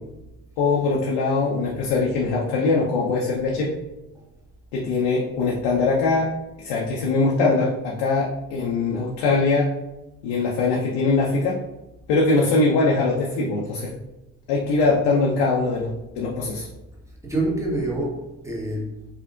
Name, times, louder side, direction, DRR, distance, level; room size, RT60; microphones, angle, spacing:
voice 1, 0.6-3.7 4.7-6.3 6.6-9.7 10.2-11.6 12.1-13.9 14.5-15.9 16.2-16.7, left 3 dB, 55° left, -3 dB, 0.7 m, -22 dB
voice 2, 17.1-19.1, right 2 dB, 5° right, -4 dB, 1.2 m, -27 dB
4.8 x 2.5 x 2.4 m, 0.99 s
figure-of-eight pair, 50°, 49 cm